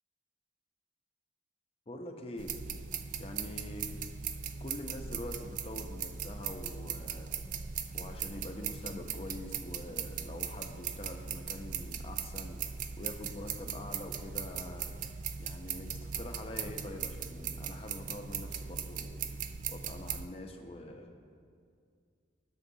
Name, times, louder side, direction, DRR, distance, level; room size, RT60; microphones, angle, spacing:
voice 1, 1.9-2.5 3.2-3.9 4.6-7.3 7.9-14.9 15.4-19.2 19.7-21.1, left 1 dB, 35° left, 3 dB, 0.7 m, -44 dB
sound 1, 2.4-20.3, right 7 dB, 45° right, 0.3 m, -39 dB
12.5 x 7.1 x 2.7 m, 2.3 s
head